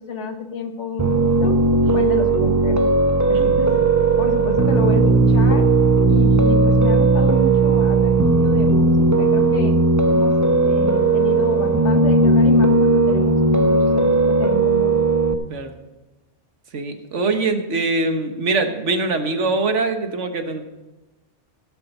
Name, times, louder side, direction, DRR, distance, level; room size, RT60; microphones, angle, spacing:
voice 1, 0.0-1.6 1.9-2.8 3.3-3.8 4.2-5.7 6.1-9.8 10.1-15.0, left 3 dB, 75° left, 6 dB, 1.6 m, -29 dB
Piano, 1.0-15.3, right 3 dB, 15° right, 0.8 m, -16 dB
voice 2, 3.3-3.8 15.5-15.7 16.7-20.6, right 3 dB, 80° right, 6 dB, 1.6 m, -23 dB
17.0 x 7.3 x 5.5 m, 1.1 s
omnidirectional pair, 1.2 m